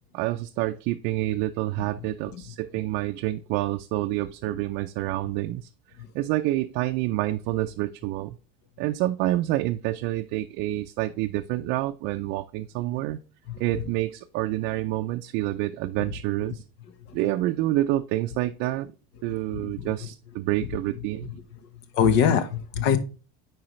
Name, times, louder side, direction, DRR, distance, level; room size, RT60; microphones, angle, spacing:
voice 1, 0.1-5.7 6.1-8.4 8.8-13.2 13.6-16.6 17.1-18.9 19.2-21.3, right 16 dB, 65° right, 0.5 m, -28 dB
voice 2, 13.5-13.8 17.1-17.2 19.5-19.9 21.2-21.3 21.9-23.0, left 7 dB, 65° left, 1.1 m, -24 dB
8.8 x 4.8 x 3.1 m
cardioid pair, 155°, 19 cm